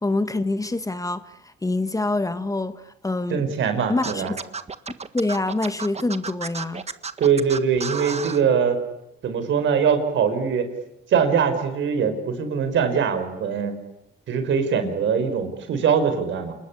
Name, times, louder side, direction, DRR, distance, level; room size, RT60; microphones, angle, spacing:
voice 1, 0.0-3.4 3.9-4.4 5.1-6.8, left 2 dB, 15° left, 1.4 m, -26 dB
voice 2, 3.3-4.4 7.2-8.8 9.2-10.7 11.1-13.8 14.3-16.6, right 6 dB, 70° right, 5.1 m, -22 dB
Scratching (performance technique), 4.0-8.4, right 5 dB, 35° right, 1.6 m, -32 dB
28.0 x 21.0 x 9.8 m
cardioid pair, 90°, 20 cm